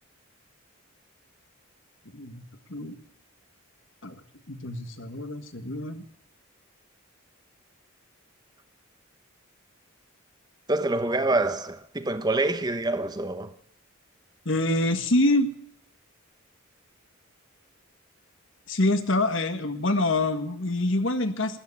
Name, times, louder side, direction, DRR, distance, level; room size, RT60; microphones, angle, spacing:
voice 1, 4.5-6.0 14.4-15.5 18.7-21.6, left 2 dB, 65° left, 1.6 m, -25 dB
voice 2, 10.7-13.5, right 2 dB, 20° right, 0.9 m, -26 dB
13.5 x 11.5 x 8.5 m
head